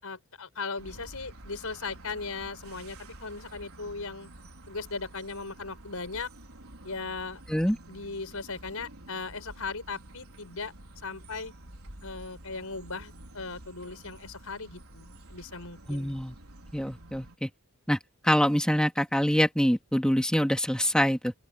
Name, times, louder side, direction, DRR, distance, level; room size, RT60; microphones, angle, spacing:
voice 1, 0.0-4.3 4.7-6.3 6.8-7.4 7.9-10.7 11.0-11.5 12.0-16.2, left 4 dB, 85° left, 4.6 m, -38 dB
sound 1, 0.8-17.4, right 1 dB, 80° right, 4.6 m, -49 dB
voice 2, 15.9-16.4 16.7-17.5 17.9-18.0 18.2-21.3, equal, 5° left, 2.0 m, -25 dB
open air
head